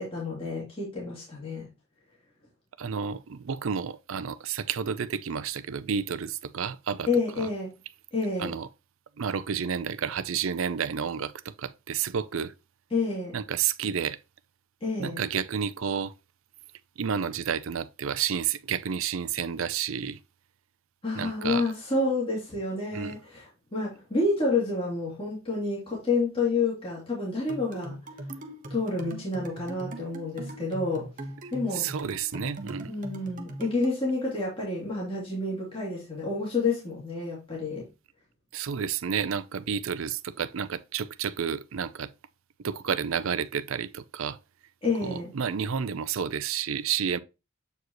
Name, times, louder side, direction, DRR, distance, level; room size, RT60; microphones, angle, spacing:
voice 1, 0.0-1.7 7.1-7.8 8.1-8.5 12.9-13.4 14.8-15.2 21.0-28.0 28.7-31.1 31.5-31.9 32.9-37.9 44.8-45.3, left 3 dB, 25° left, 2.7 m, -29 dB
voice 2, 2.8-7.1 7.4-7.5 8.4-8.7 9.2-12.5 13.3-14.2 15.0-16.1 17.0-20.2 21.1-21.6 22.9-23.2 31.7-32.9 38.5-42.1 42.6-44.4 45.0-47.2, right 7 dB, 65° right, 0.5 m, -30 dB
sound 1, 27.5-34.0, right 1 dB, 40° right, 1.1 m, -40 dB
7.9 x 4.8 x 3.0 m
head